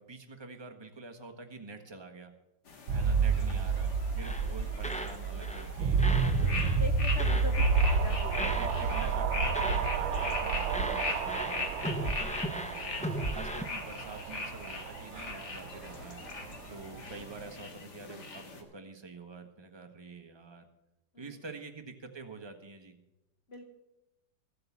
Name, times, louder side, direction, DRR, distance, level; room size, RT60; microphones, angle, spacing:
voice 1, 0.0-2.3 2.9-6.6 7.1-7.6 8.2-16.2 16.7-20.6 21.2-23.0, right 3 dB, 15° right, 5 dB, 1.0 m, -47 dB
sound 1, 2.7-18.6, left 4 dB, 60° left, 2.2 m, -40 dB
sound 2, 2.9-17.5, right 5 dB, 85° right, 1.6 m, -31 dB
sound 3, 4.2-5.2 5.4-5.7 6.0-7.5 7.8-8.1 8.3-9.9 10.1-10.4 10.7-13.6, right 1 dB, 5° left, 0.5 m, -37 dB
voice 2, 6.4-9.3 21.1-21.4 23.5-23.6, left 2 dB, 45° left, 5 dB, 1.0 m, -43 dB
14.5 x 7.8 x 7.2 m, 0.93 s
omnidirectional pair, 2.0 m